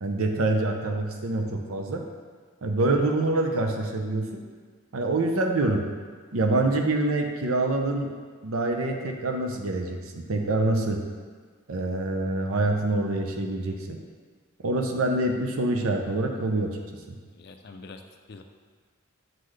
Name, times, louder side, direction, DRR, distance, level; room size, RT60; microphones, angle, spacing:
voice 1, 0.0-2.0 2.6-4.4 4.9-5.8 6.3-8.1 8.4-11.0 11.7-14.0 14.6-16.7 17.1-17.2, right 2 dB, 85° right, 3 dB, 0.6 m, -26 dB
voice 2, 2.8-3.1 17.3-18.0 18.3-18.4, left 3 dB, 50° left, 6 dB, 0.4 m, -44 dB
7.4 x 3.9 x 3.2 m, 1.5 s
head